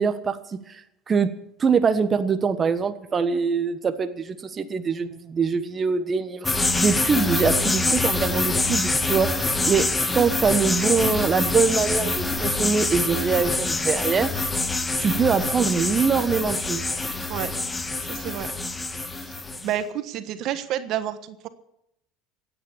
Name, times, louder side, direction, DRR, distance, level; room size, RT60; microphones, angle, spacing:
voice 1, 0.0-1.3 1.6-9.9 10.1-14.3 15.0-16.8, right 5 dB, 30° right, 9 dB, 1.2 m, -23 dB
sound 1, 6.4-19.7, left 2 dB, 15° left, 1.5 m, -25 dB
voice 2, 18.0-18.5 19.2-19.3 19.6-21.5, right 11 dB, 55° right, 11 dB, 1.3 m, -29 dB
16.0 x 9.7 x 7.2 m, 0.81 s
supercardioid pair, 100°, 0 cm